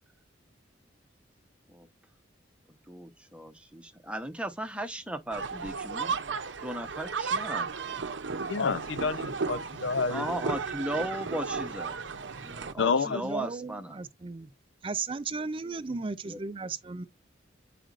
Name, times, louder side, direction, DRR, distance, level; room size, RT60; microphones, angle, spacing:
voice 1, 2.9-6.2 6.6-7.7 10.1-12.0 12.4-14.0 16.2-16.4, right 1 dB, 5° right, 0.9 m, -36 dB
sound 1, 5.3-12.7, right 5 dB, 70° right, 0.7 m, -34 dB
voice 2, 8.5-10.3 12.8-13.2, left 5 dB, 70° left, 0.5 m, -28 dB
voice 3, 12.8-14.5 14.8-17.1, right 4 dB, 25° right, 0.4 m, -36 dB
8.8 x 4.9 x 2.5 m
head